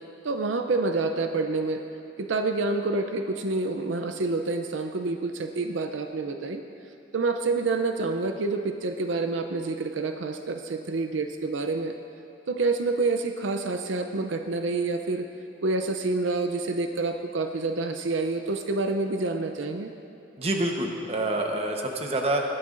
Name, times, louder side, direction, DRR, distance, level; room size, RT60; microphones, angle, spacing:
voice 1, 0.2-1.8 2.2-6.6 7.1-11.9 12.5-15.3 15.6-19.9, right 3 dB, 75° right, 6 dB, 0.6 m, -28 dB
voice 2, 20.4-22.4, right 1 dB, 30° right, 2 dB, 1.0 m, -27 dB
20.5 x 12.0 x 2.6 m, 3.0 s
head